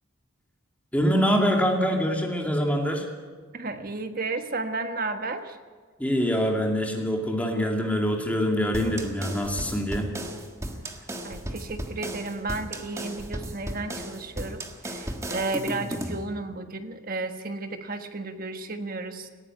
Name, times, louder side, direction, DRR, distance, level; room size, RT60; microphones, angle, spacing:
voice 1, 0.9-3.1 6.0-10.1, equal, 5° left, 1 dB, 2.4 m, -24 dB
voice 2, 3.5-5.6 11.2-19.3, right 3 dB, 40° right, 7 dB, 1.4 m, -33 dB
sound 1, 8.7-16.2, right 1 dB, 15° right, 1.4 m, -35 dB
18.5 x 15.0 x 9.8 m, 1.5 s
head